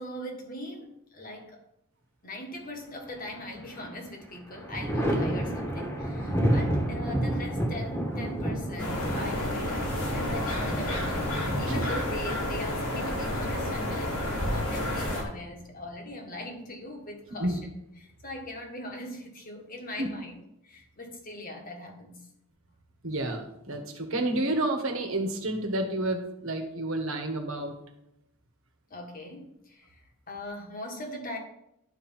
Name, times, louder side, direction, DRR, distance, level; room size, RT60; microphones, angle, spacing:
voice 1, 0.0-1.6 2.2-17.7 18.0-20.3 20.6-22.3 28.9-31.4, left 1 dB, 40° left, 2 dB, 1.6 m, -41 dB
Thunder, 3.1-3.8 4.2-13.8 15.3-16.1, right 1 dB, 10° left, 1.5 m, -31 dB
sound 1, 8.8-15.2, left 1 dB, 80° left, 2.8 m, -30 dB
voice 2, 23.0-27.7, right 1 dB, 65° right, 4 dB, 1.5 m, -30 dB
11.5 x 4.5 x 5.7 m, 0.81 s
head